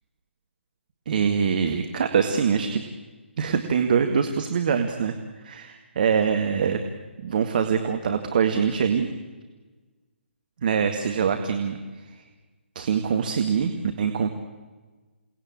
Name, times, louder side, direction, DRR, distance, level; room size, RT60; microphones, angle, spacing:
voice 1, 1.1-2.8 3.4-5.2 5.4-6.8 7.2-9.1 10.6-11.8 12.8-14.3, right 6 dB, 45° right, 6 dB, 2.0 m, -24 dB
28.5 x 19.0 x 8.9 m, 1.3 s
figure-of-eight pair, 140°, 7 cm